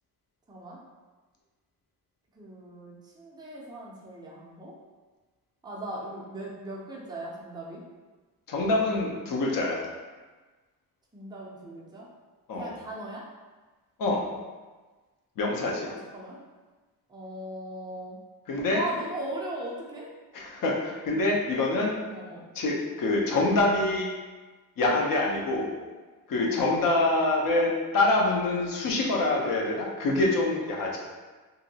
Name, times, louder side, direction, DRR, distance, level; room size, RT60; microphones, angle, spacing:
voice 1, 0.5-0.8 2.3-4.8 5.6-7.8 11.1-12.1 12.5-13.2 15.8-16.4 17.1-18.2 18.7-20.1 22.1-22.4 26.4-26.6 30.7-30.9, right 1 dB, 10° right, -5 dB, 0.4 m, -39 dB
voice 2, 8.5-9.8 12.5-12.7 14.0-14.2 15.4-15.9 18.5-18.8 20.3-21.9 22.6-24.1 24.8-25.7 26.3-31.0, left 2 dB, 55° left, -1 dB, 0.6 m, -25 dB
2.9 x 2.6 x 2.7 m, 1.3 s
wide cardioid pair, 175°, 39 cm